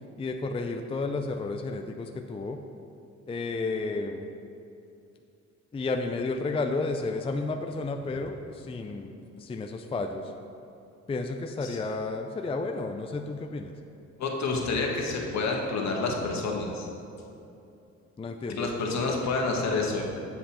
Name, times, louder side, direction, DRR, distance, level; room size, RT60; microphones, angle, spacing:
voice 1, 0.2-2.6 3.3-4.3 5.7-10.3 11.1-13.7 18.2-18.7, left 3 dB, 20° left, 4 dB, 0.4 m, -32 dB
voice 2, 14.2-16.9 18.6-20.0, left 3 dB, 65° left, 0 dB, 1.4 m, -28 dB
7.9 x 7.5 x 4.3 m, 2.7 s
cardioid pair, 90°, 30 cm